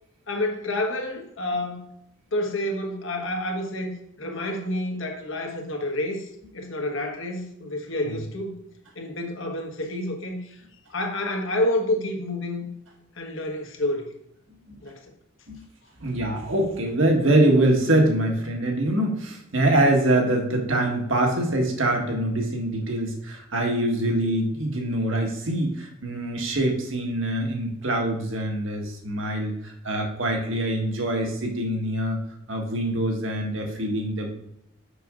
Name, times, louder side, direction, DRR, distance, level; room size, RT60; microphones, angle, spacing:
voice 1, 0.3-1.9 2.3-3.9 4.2-6.3 6.5-8.6 8.9-10.6 10.9-12.7 13.2-14.1 14.8-15.0, left 1 dB, 65° left, 2 dB, 1.4 m, -28 dB
voice 2, 16.0-32.2 32.5-34.4, right 1 dB, 65° right, 1 dB, 1.6 m, -24 dB
6.9 x 6.0 x 3.7 m, 0.77 s
head